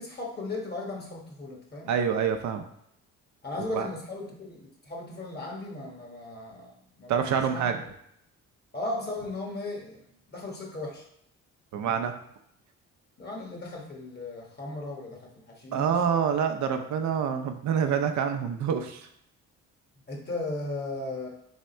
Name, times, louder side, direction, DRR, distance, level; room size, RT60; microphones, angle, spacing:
voice 1, 0.0-1.9 3.4-7.7 8.7-10.0 10.3-11.0 13.2-16.2 20.1-21.3, left 2 dB, 35° left, -1 dB, 1.3 m, -36 dB
voice 2, 1.9-2.6 3.7-3.9 7.1-7.8 11.7-12.1 15.7-19.1, right 7 dB, 70° right, 6 dB, 0.6 m, -26 dB
3.6 x 3.3 x 4.2 m, 0.73 s
cardioid pair, 90°, 30 cm